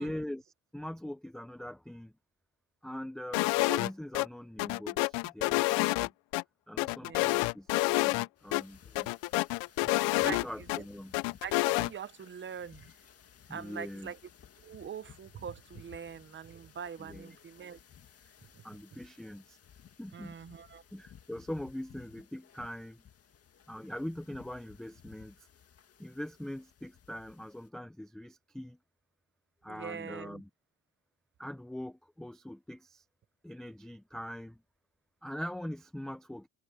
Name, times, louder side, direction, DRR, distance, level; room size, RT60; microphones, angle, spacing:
voice 1, 0.0-2.1 2.8-6.1 6.7-9.1 10.2-11.1 13.5-14.1 17.0-17.4 18.6-19.6 20.0-20.4 20.9-23.0 23.7-25.4 26.0-28.8 29.6-30.5 31.4-33.0 33.4-34.6 35.2-36.5, left 1 dB, ahead, 0.4 m, -42 dB
sound 1, 3.3-3.9 4.1-4.3 4.6-6.4 6.8-8.3 8.5-8.6 9.0-10.8 11.1-11.9, left 24 dB, 75° left, 0.6 m, -28 dB
voice 2, 7.0-7.4 9.8-10.4 11.4-12.9 13.5-14.2 14.6-17.8 20.1-20.8 29.7-30.4, right 7 dB, 25° right, 0.8 m, -43 dB
sound 2, 8.4-27.7, left 8 dB, 35° left, 1.9 m, -58 dB
cardioid pair, 140°, 43 cm